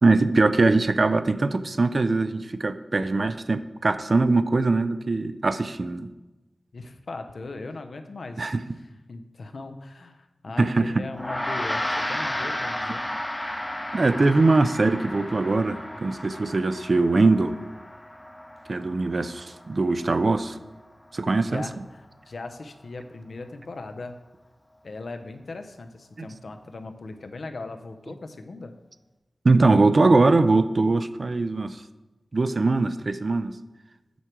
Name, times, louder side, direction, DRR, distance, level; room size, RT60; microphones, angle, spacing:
voice 1, 0.0-6.1 8.4-8.6 10.6-10.9 13.9-17.6 18.7-20.6 21.1-21.6 29.4-31.8 32.3-33.6, right 3 dB, 50° right, 12 dB, 0.4 m, -21 dB
voice 2, 6.7-8.6 9.1-13.0 21.4-24.2 24.8-28.7, left 3 dB, 65° left, 7 dB, 0.7 m, -39 dB
Gong, 11.1-20.8, left 1 dB, 15° left, 0.7 m, -33 dB
8.1 x 6.0 x 4.5 m, 1.1 s
wide cardioid pair, 95°, 0 cm